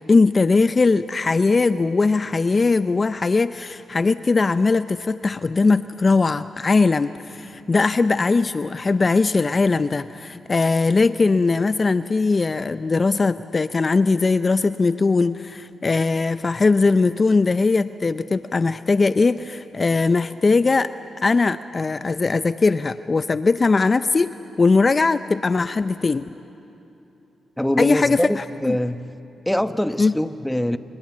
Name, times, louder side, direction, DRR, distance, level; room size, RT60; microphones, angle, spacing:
voice 1, 0.1-20.9 21.2-24.3 24.6-26.3 27.8-28.8 30.0-30.1, left 3 dB, 40° left, 12 dB, 0.6 m, -20 dB
voice 2, 27.6-29.1 29.5-30.8, left 1 dB, 5° left, 11 dB, 1.0 m, -23 dB
28.5 x 27.0 x 7.4 m, 2.9 s
supercardioid pair, 55°, 0 cm